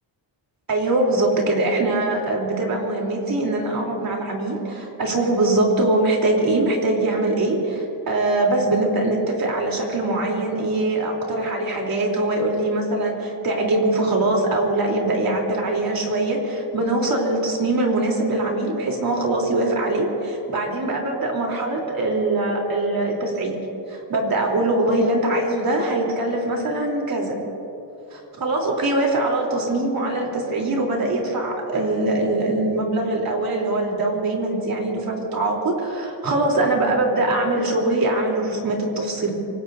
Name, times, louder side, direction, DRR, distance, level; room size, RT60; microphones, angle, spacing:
voice 1, 0.7-23.6 23.9-27.4 28.1-39.3, right 2 dB, 50° right, -1 dB, 3.6 m, -22 dB
26.0 x 19.5 x 2.7 m, 3.0 s
cardioid pair, 100°, 46 cm